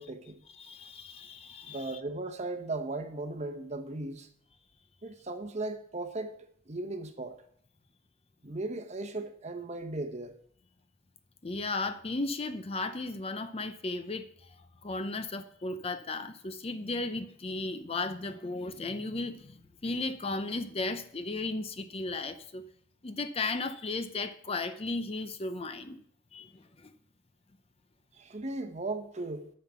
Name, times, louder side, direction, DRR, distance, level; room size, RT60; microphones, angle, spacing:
voice 1, 0.0-0.4 1.6-4.3 5.0-6.4 6.7-7.4 8.4-10.4 28.1-29.5, right 2 dB, 35° right, 1.0 m, -37 dB
voice 2, 0.5-2.0 11.4-14.3 14.8-22.6 23.0-26.0 26.3-26.9, left 3 dB, 30° left, 0.6 m, -35 dB
9.6 x 5.7 x 6.9 m
head